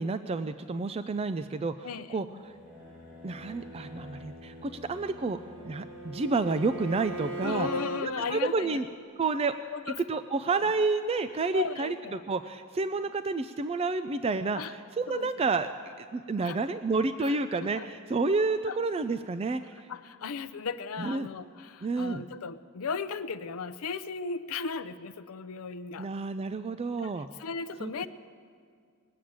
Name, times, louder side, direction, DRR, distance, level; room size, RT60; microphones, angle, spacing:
voice 1, 0.0-2.3 3.2-5.4 5.6-7.7 8.0-8.9 9.2-9.5 10.1-15.7 16.0-19.9 21.0-21.3 21.8-22.2 26.0-27.3 27.8-28.1, right 3 dB, 25° right, 10 dB, 0.3 m, -30 dB
voice 2, 1.8-2.4 7.4-8.8 9.7-10.0 10.6-10.7 11.5-12.2 14.5-14.7 15.1-15.5 16.4-16.6 17.2-17.9 18.7-18.8 19.9-26.1 27.0-28.1, left 5 dB, 70° left, 12 dB, 0.6 m, -36 dB
sound 1, 2.3-7.6, left 2 dB, 85° right, 4.9 m, -49 dB
Bowed string instrument, 5.0-8.1, right 3 dB, 60° right, 1.0 m, -39 dB
21.0 x 7.6 x 8.7 m, 2.2 s
head